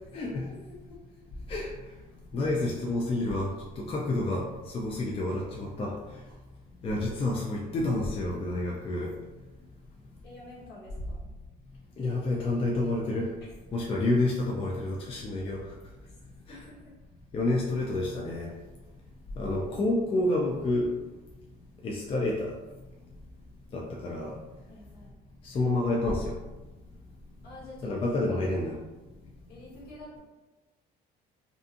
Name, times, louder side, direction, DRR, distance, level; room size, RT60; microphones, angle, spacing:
voice 1, 0.1-0.5 1.5-1.7 2.3-4.5 4.7-6.0 6.8-9.1 12.0-13.3 13.7-15.7 16.5-16.6 17.3-18.5 19.4-20.9 21.8-22.5 23.7-24.4 25.4-26.3 27.8-28.8, left 2 dB, 35° left, -2 dB, 0.4 m, -29 dB
voice 2, 10.2-11.3 13.4-13.5 16.1-16.2 16.5-16.9 19.4-19.6 24.7-25.2 27.4-27.9 29.5-30.2, left 1 dB, 65° left, -6 dB, 1.2 m, -48 dB
2.6 x 2.5 x 2.5 m, 1.1 s
cardioid pair, 110°, 17 cm